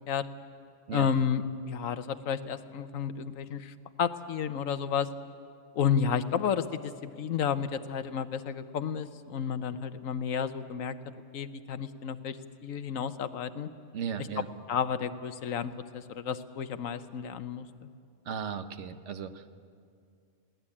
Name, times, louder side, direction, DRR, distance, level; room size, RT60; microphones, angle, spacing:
voice 1, 0.9-5.1 5.7-11.0 11.3-12.4 12.6-13.7 14.7-17.7, left 7 dB, 80° left, 12 dB, 1.2 m, -31 dB
voice 2, 13.9-14.5 18.3-19.5, right 7 dB, 65° right, 10 dB, 1.1 m, -36 dB
21.5 x 17.5 x 8.7 m, 2.3 s
omnidirectional pair, 1.4 m